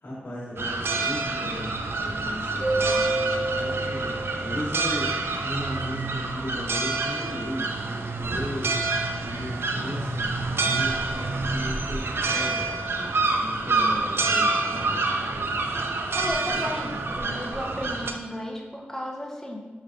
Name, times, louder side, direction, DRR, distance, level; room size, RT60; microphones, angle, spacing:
voice 1, 0.0-1.7 2.0-8.8 9.2-12.7 13.3-15.6 16.5-17.1, left 1 dB, 60° left, -11 dB, 1.1 m, -37 dB
sound 1, 0.6-18.1, right 3 dB, 65° right, 0.4 m, -27 dB
Keyboard (musical), 2.6-5.3, right 2 dB, 40° right, 1.4 m, -29 dB
voice 2, 16.1-19.7, equal, 10° left, 0 dB, 0.7 m, -34 dB
4.5 x 3.2 x 2.5 m, 1.3 s
cardioid pair, 45°, 4 cm